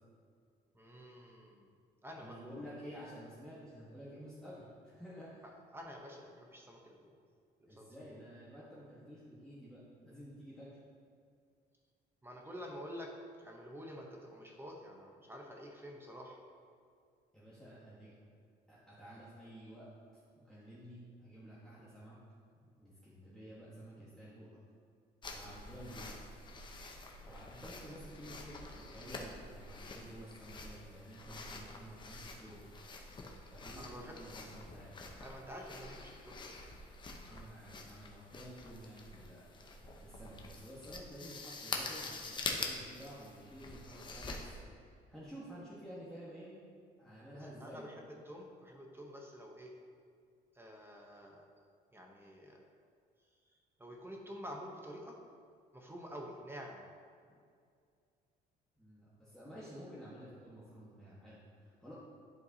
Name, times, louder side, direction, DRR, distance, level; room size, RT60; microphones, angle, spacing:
voice 1, 0.7-1.7 2.0-2.4 5.7-7.1 7.7-7.9 12.2-13.1 13.4-16.4 33.8-34.5 35.2-36.4 47.3-49.7 50.5-51.5 51.9-52.6 53.8-55.2 55.7-56.9, equal, 15° right, 0 dB, 0.9 m, -49 dB
voice 2, 2.1-5.4 7.6-10.7 17.3-18.1 18.7-19.9 20.3-22.2 22.5-24.5 25.3-26.1 27.2-32.6 33.5-35.0 37.2-39.5 40.0-46.5 47.0-47.9 58.8-61.9, equal, 5° left, -10 dB, 1.4 m, -51 dB
sound 1, 25.2-44.6, left 3 dB, 30° left, 0.8 m, -46 dB
11.0 x 4.5 x 2.8 m, 2.2 s
cardioid pair, 110°, 17 cm